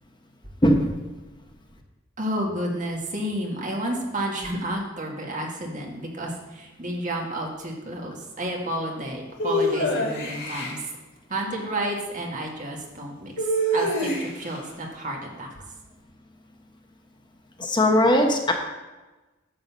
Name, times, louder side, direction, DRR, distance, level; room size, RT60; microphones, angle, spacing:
voice 1, 0.6-0.9 17.6-18.5, left 1 dB, 25° left, 2 dB, 1.0 m, -19 dB
voice 2, 2.2-10.8 11.3-13.5 13.7-15.5, right 1 dB, 40° right, 0 dB, 1.8 m, -31 dB
sound 1, 9.4-10.8 13.4-14.5, equal, 60° left, 2.2 m, -25 dB
10.5 x 3.9 x 7.3 m, 1.1 s
head